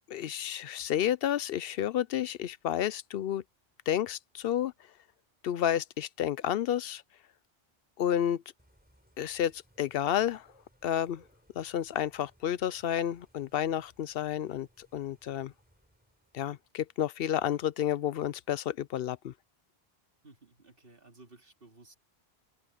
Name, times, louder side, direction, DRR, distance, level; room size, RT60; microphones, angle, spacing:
voice 1, 0.1-3.4 3.9-4.7 5.4-7.0 8.0-8.4 9.2-10.5 10.8-11.2 11.6-15.5 16.3-19.3, left 10 dB, 70° left, 0.7 m, -31 dB
Bird / Rain, 8.6-16.7, equal, 10° right, 5.1 m, -65 dB
voice 2, 20.2-22.0, right 2 dB, 65° right, 2.8 m, -56 dB
open air
omnidirectional pair, 1.0 m